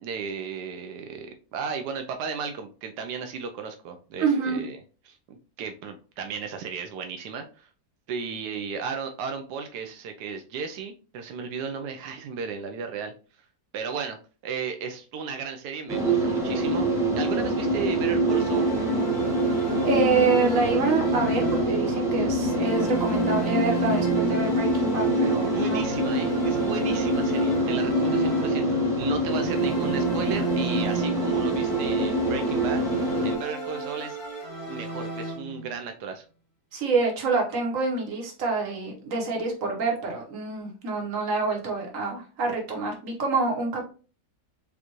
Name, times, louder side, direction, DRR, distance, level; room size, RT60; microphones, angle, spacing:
voice 1, 0.0-4.8 5.1-7.7 8.1-13.1 13.7-14.2 14.4-16.9 17.2-18.8 25.4-34.2 34.7-36.2, right 5 dB, 90° right, 5 dB, 1.2 m, -35 dB
voice 2, 4.2-4.6 19.8-25.8 36.7-43.9, right 4 dB, 55° right, 0 dB, 1.5 m, -27 dB
sound 1, 15.9-33.3, right 1 dB, ahead, 0.8 m, -25 dB
sound 2, 18.3-22.0 22.4-28.9 29.3-35.7, right 4 dB, 70° left, 2.1 m, -35 dB
5.3 x 2.5 x 3.0 m, 0.37 s
omnidirectional pair, 1.7 m